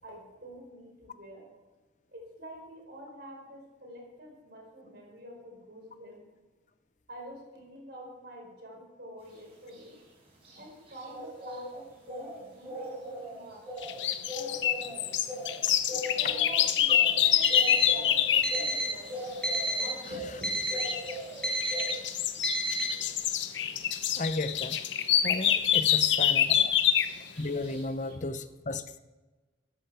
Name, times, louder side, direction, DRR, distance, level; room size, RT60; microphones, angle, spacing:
voice 1, 0.0-1.5 2.1-6.2 7.1-10.0 10.5-13.6 14.3-15.1 15.9-19.2 19.7-20.9 26.5-26.8, equal, 55° right, 0 dB, 4.5 m, -47 dB
sound 1, 9.3-28.1, equal, 30° right, 5.4 m, -42 dB
sound 2, 13.8-18.6 20.8-21.2 21.6-27.2, left 10 dB, 70° left, 0.7 m, -26 dB
Alarm, 17.2-17.9 18.4-19.0 19.4-20.0 20.4-21.0 21.4-21.9 22.4-22.9, right 1 dB, 5° left, 2.0 m, -30 dB
voice 2, 24.2-24.8 25.2-26.6 27.4-29.0, left 2 dB, 40° left, 11 dB, 0.7 m, -34 dB
13.5 x 13.5 x 4.7 m, 1.2 s
head